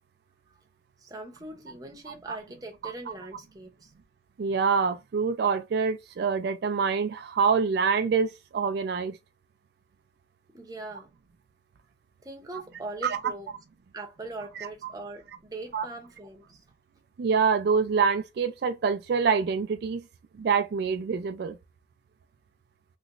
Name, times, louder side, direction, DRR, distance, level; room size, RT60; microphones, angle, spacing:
voice 1, 1.0-3.9 10.5-11.1 12.2-13.5 13.9-16.6, right 2 dB, 20° right, 0.7 m, -41 dB
voice 2, 4.4-9.2 13.0-13.2 14.6-14.9 15.7-15.9 17.2-20.0 20.4-21.6, right 5 dB, 60° right, 0.3 m, -26 dB
3.1 x 2.9 x 2.4 m
head